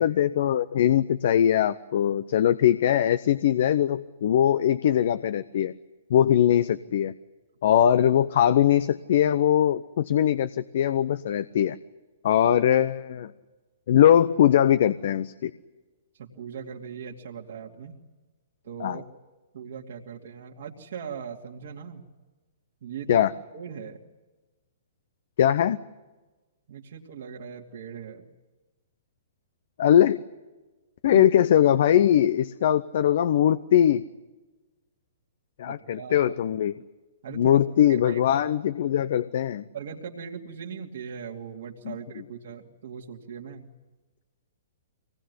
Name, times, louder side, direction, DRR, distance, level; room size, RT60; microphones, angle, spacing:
voice 1, 0.0-5.7 6.1-7.1 7.6-11.8 12.2-13.3 13.9-15.5 18.8-19.0 23.1-23.3 25.4-25.8 29.8-30.2 31.0-34.0 35.6-36.7 37.4-39.6 41.9-42.0, left 10 dB, 60° left, 13 dB, 0.8 m, -21 dB
voice 2, 16.1-18.0 18.6-19.0 19.5-22.1 22.8-23.3 23.5-24.0 26.7-28.3 31.1-31.3 35.7-36.3 37.2-38.4 39.7-43.7, right 7 dB, 65° right, -1 dB, 2.7 m, -39 dB
24.5 x 19.0 x 9.8 m, 1.2 s
hypercardioid pair, 125°, 0 cm